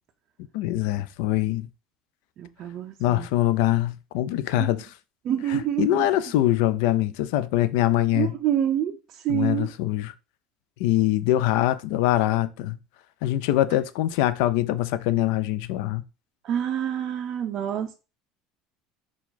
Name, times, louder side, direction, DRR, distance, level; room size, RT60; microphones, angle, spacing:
voice 1, 0.5-1.7 3.0-4.9 5.5-8.3 9.3-10.1 10.8-12.8 13.2-16.0, left 14 dB, 80° left, 0.3 m, -23 dB
voice 2, 2.4-3.3 4.5-4.7 5.2-6.1 8.1-9.7 16.4-17.9, right 10 dB, 50° right, 0.4 m, -27 dB
4.5 x 2.3 x 4.0 m
cardioid pair, 125°, 0 cm